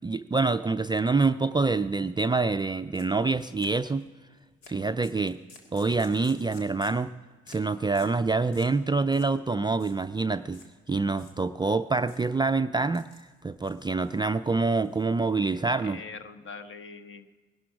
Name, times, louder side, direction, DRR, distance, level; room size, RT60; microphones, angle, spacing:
voice 1, 0.0-4.1 4.7-5.4 5.7-7.1 7.5-10.6 10.9-13.1 13.4-16.0, right 3 dB, 15° right, 10 dB, 0.4 m, -26 dB
sound 1, 2.9-3.1 3.4-4.1 4.6-4.8 5.0-7.1 7.5-7.7 8.0-8.2 8.5-8.8 9.1-9.4 9.7-10.0 10.5-10.7 11.1-11.7 12.1-12.3 12.8-13.3 13.6-14.3 14.7-15.5, left 3 dB, 80° left, 1.9 m, -53 dB
voice 2, 15.4-17.3, left 5 dB, 40° left, 10 dB, 1.3 m, -43 dB
19.5 x 11.5 x 4.8 m, 1.4 s
hypercardioid pair, 50°, 31 cm